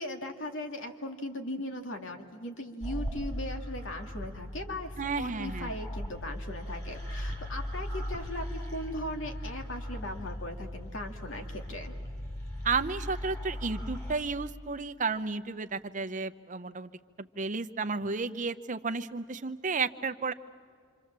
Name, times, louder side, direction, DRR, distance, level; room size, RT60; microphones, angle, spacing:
voice 1, 0.0-11.9, left 1 dB, 70° left, 4 dB, 2.3 m, -38 dB
sound 1, 2.8-14.1, equal, 15° left, 6.6 m, -38 dB
voice 2, 5.0-5.7 12.6-16.9 17.2-20.3, right 4 dB, 40° right, 10 dB, 0.8 m, -32 dB
27.0 x 26.0 x 7.4 m, 2.1 s
head